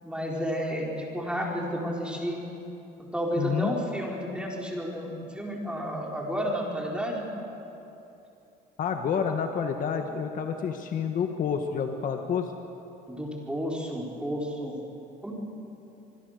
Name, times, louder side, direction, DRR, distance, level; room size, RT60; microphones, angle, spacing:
voice 1, 0.0-2.4 3.1-7.3 13.1-14.7 15.2-15.3, equal, 5° right, -2 dB, 4.5 m, -31 dB
voice 2, 3.4-3.7 8.8-12.5, left 7 dB, 55° left, 5 dB, 1.6 m, -29 dB
26.0 x 21.0 x 6.7 m, 2.9 s
cardioid pair, 110°, 17 cm